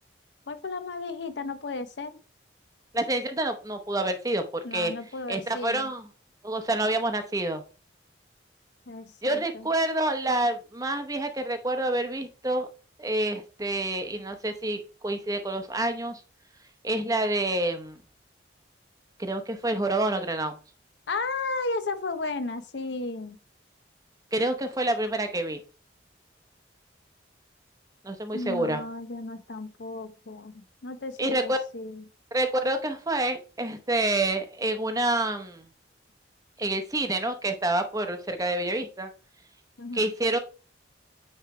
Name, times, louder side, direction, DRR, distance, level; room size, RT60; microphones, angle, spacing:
voice 1, 0.5-2.2 4.6-5.9 8.9-9.7 21.1-23.4 28.3-32.0 39.8-40.1, left 3 dB, 70° left, 0.7 m, -34 dB
voice 2, 2.9-4.9 5.3-6.1 6.4-7.6 9.2-12.7 13.0-16.2 16.8-18.0 19.2-20.6 24.3-25.6 28.0-28.8 31.2-31.6 32.3-35.7 36.6-39.1 39.9-40.4, right 1 dB, 20° right, 0.8 m, -28 dB
9.2 x 3.2 x 4.7 m
head